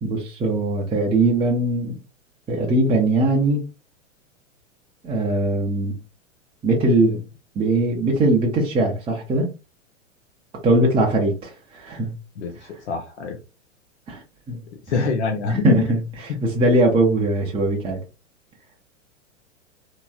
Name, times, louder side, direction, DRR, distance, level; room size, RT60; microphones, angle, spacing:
voice 1, 0.0-2.0 2.5-3.6 5.0-6.0 6.6-7.2 7.6-9.5 10.6-12.1 14.1-14.2 14.5-14.6 15.0-15.1 15.5-18.0, right 2 dB, 15° right, 0.7 m, -20 dB
voice 2, 12.4-13.4 14.9-15.8, left 5 dB, 60° left, 0.7 m, -25 dB
3.0 x 2.8 x 2.3 m
figure-of-eight pair, 95°, 38 cm